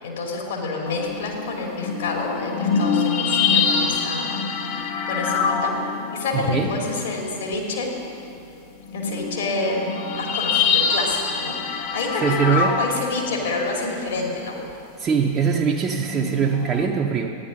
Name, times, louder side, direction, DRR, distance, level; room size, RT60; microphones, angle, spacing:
voice 1, 0.0-4.5 5.1-5.7 6.1-7.9 8.9-14.6, left 3 dB, 65° left, -1 dB, 2.5 m, -28 dB
sound 1, 0.9-7.9 8.4-8.5 8.8-13.7 15.9-16.9, left 5 dB, 45° left, 1.1 m, -25 dB
voice 2, 6.3-6.7 12.2-12.8 15.0-17.4, right 6 dB, 25° right, 0 dB, 0.7 m, -22 dB
13.5 x 10.0 x 5.3 m, 2.7 s
figure-of-eight pair, 90°, 0 cm